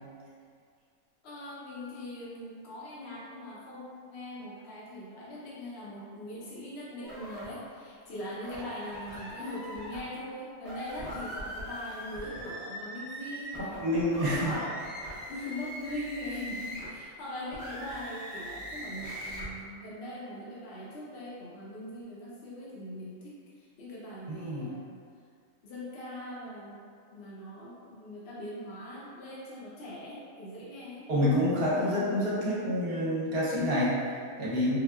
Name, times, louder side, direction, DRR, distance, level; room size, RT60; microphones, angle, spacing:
voice 1, 1.2-13.8 14.2-14.8 15.3-24.8 25.6-26.9 27.1-31.1 31.6-32.0, left 1 dB, 60° left, -7 dB, 0.8 m, -41 dB
sound 1, 7.0-7.5 8.4-10.0 10.6-17.0 17.5-19.5, equal, 25° left, 0.5 m, -41 dB
voice 2, 13.6-14.5 24.3-24.7 31.1-34.8, left 1 dB, 55° right, -8 dB, 0.8 m, -28 dB
3.4 x 2.3 x 2.2 m, 2.2 s
omnidirectional pair, 1.4 m